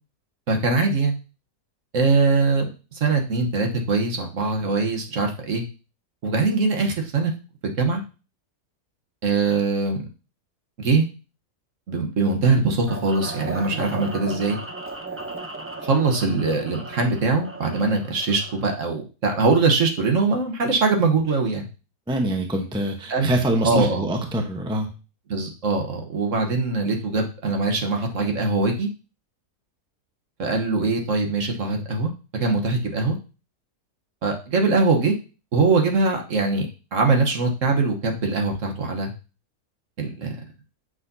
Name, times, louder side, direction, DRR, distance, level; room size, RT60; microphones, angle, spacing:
voice 1, 0.5-1.2 1.9-5.6 6.2-7.3 7.6-8.0 9.2-10.0 10.8-11.0 11.9-14.6 15.8-21.7 23.1-23.3 23.6-24.0 25.3-28.9 30.4-32.1 32.4-33.2 34.2-35.1 35.5-39.1 40.0-40.3, right 3 dB, 55° right, 3 dB, 1.4 m, -22 dB
sound 1, 12.9-18.8, right 2 dB, 20° right, 0.3 m, -36 dB
voice 2, 22.1-24.9, right 1 dB, 5° right, 3 dB, 0.7 m, -24 dB
8.1 x 6.0 x 2.7 m, 0.32 s
omnidirectional pair, 1.7 m